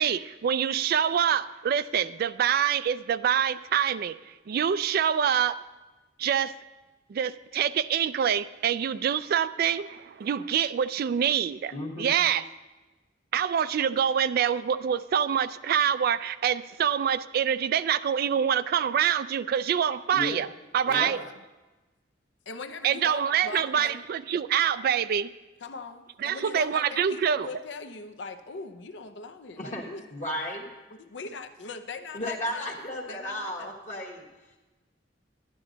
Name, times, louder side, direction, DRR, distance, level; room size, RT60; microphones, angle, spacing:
voice 1, 0.0-5.6 6.2-6.5 7.1-12.4 13.3-20.5 20.7-21.2 22.8-25.3 26.2-27.5, right 8 dB, 55° right, 15 dB, 0.3 m, -26 dB
voice 2, 11.7-12.2 20.1-20.4 20.9-21.2 29.6-29.8 30.1-30.6 32.1-34.3, left 1 dB, 45° left, -2 dB, 1.3 m, -34 dB
voice 3, 20.8-21.3 22.5-23.9 25.6-30.0 30.9-32.7 33.1-33.8, left 4 dB, 70° left, 9 dB, 0.6 m, -40 dB
11.0 x 10.5 x 3.9 m, 1.1 s
head